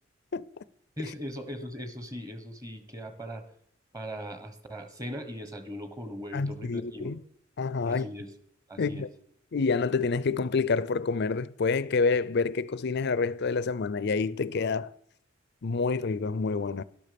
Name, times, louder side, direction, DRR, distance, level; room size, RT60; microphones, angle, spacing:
voice 1, 1.0-3.4 3.9-7.1 7.8-8.3 8.7-9.1, equal, 20° right, 1.4 m, -39 dB
voice 2, 6.3-7.2 7.6-8.1 8.8-9.1 9.5-14.9 15.6-16.8, left 4 dB, 55° left, 0.5 m, -28 dB
12.5 x 12.0 x 5.2 m
head